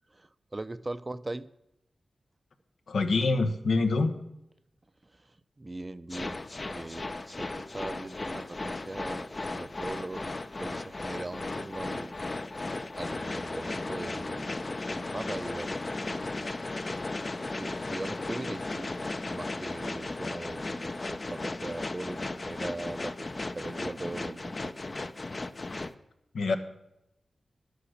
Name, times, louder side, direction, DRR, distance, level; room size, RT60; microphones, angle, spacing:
voice 1, 0.1-1.5 5.2-5.3 5.6-6.4 6.7-9.3 9.5-10.3 10.6-12.1 13.0-14.5 14.9-15.8 16.2-16.5 17.6-18.9 19.3-24.7, right 2 dB, 30° right, 13 dB, 0.6 m, -40 dB
voice 2, 2.9-4.1 26.3-26.6, left 3 dB, 90° left, 6 dB, 1.1 m, -25 dB
sound 1, 6.1-25.9, left 2 dB, 40° left, 0.6 m, -36 dB
11.0 x 8.4 x 6.5 m, 0.84 s
cardioid pair, 65°, 0 cm